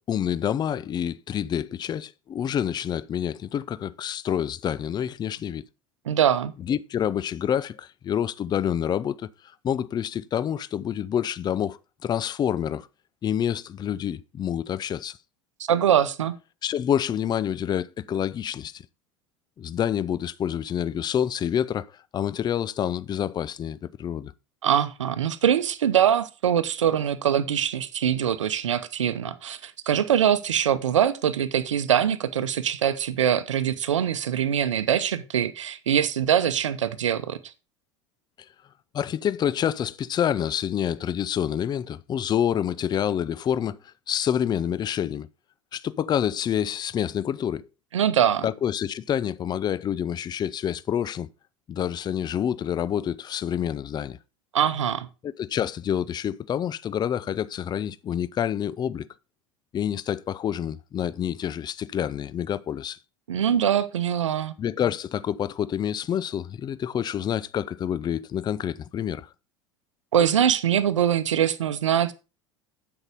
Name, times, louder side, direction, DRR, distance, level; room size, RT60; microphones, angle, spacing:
voice 1, 0.0-5.6 6.7-9.3 9.6-12.9 13.2-15.2 16.6-18.8 19.6-21.9 22.1-24.3 38.9-45.3 45.7-47.6 48.4-51.3 51.7-54.2 55.2-59.1 59.7-63.0 64.6-69.3, left 9 dB, 25° left, 0.5 m, -27 dB
voice 2, 6.1-6.5 15.7-16.3 24.6-37.4 47.9-48.5 54.5-55.1 63.3-64.5 70.1-72.1, right 9 dB, 80° right, 0.7 m, -23 dB
8.0 x 5.9 x 5.1 m
hypercardioid pair, 80°, 16 cm